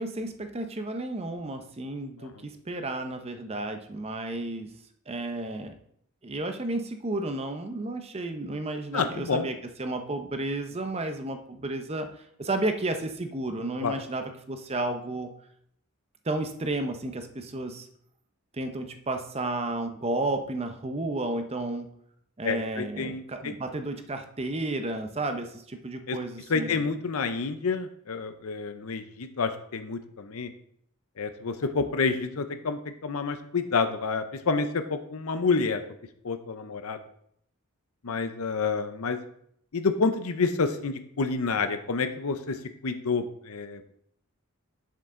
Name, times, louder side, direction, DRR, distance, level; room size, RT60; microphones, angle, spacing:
voice 1, 0.0-4.7 5.1-5.8 6.2-15.3 16.2-17.9 18.5-21.9 22.4-26.9, right 2 dB, 30° right, 7 dB, 0.6 m, -32 dB
voice 2, 8.9-9.5 13.8-14.0 22.4-23.5 26.1-26.2 26.5-30.5 31.2-35.8 36.2-37.0 38.0-39.2 39.7-42.6 42.8-43.8, left 4 dB, 75° left, 9 dB, 0.6 m, -28 dB
7.9 x 7.5 x 3.7 m, 0.69 s
head